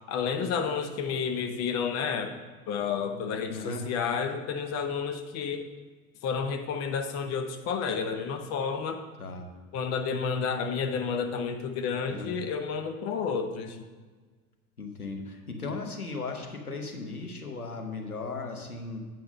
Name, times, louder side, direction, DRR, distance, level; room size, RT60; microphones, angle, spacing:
voice 1, 0.1-2.4 2.7-5.7 6.2-9.0 9.7-13.9 15.6-15.7, left 6 dB, 35° left, 6 dB, 0.9 m, -31 dB
voice 2, 3.5-3.9 9.2-9.5 12.1-12.3 14.8-19.0, left 3 dB, 85° left, 3 dB, 1.1 m, -37 dB
8.9 x 5.8 x 5.3 m, 1.4 s
figure-of-eight pair, 75°, 43 cm